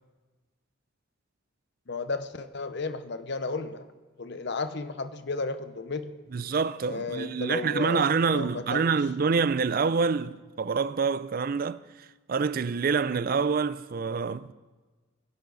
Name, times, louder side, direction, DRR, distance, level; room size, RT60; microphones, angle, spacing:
voice 1, 1.9-3.8 4.2-6.2 6.9-8.9, left 3 dB, 55° left, 0.8 m, -33 dB
voice 2, 6.3-14.5, right 5 dB, 45° right, 0.4 m, -27 dB
21.5 x 10.5 x 4.0 m
head